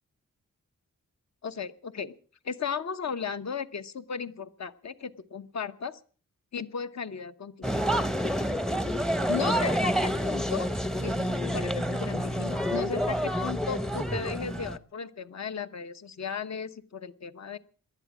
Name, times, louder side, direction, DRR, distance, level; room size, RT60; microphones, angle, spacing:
voice 1, 1.4-2.1 2.4-6.0 6.5-7.8 8.3-8.5 9.3-10.7 11.0-17.6, left 6 dB, 55° left, 12 dB, 0.9 m, -36 dB
sound 1, 7.6-14.8, equal, ahead, 0.7 m, -28 dB
18.5 x 12.0 x 6.0 m, 0.43 s
wide cardioid pair, 130°, 33 cm